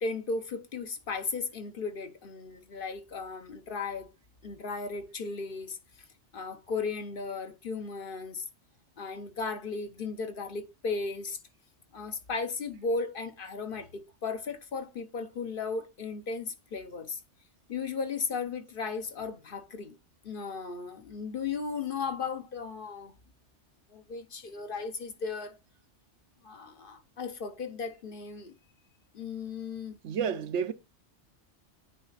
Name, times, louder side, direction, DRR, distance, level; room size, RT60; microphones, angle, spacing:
voice 1, 0.0-4.1 4.4-5.8 6.3-8.4 9.0-11.4 11.9-17.2 17.7-20.0 20.2-23.1 23.9-25.6 26.4-28.5 29.1-30.0, left 4 dB, 55° left, 0.9 m, -36 dB
voice 2, 30.0-30.7, right 7 dB, 75° right, 1.0 m, -30 dB
9.6 x 3.3 x 4.0 m
omnidirectional pair, 1.2 m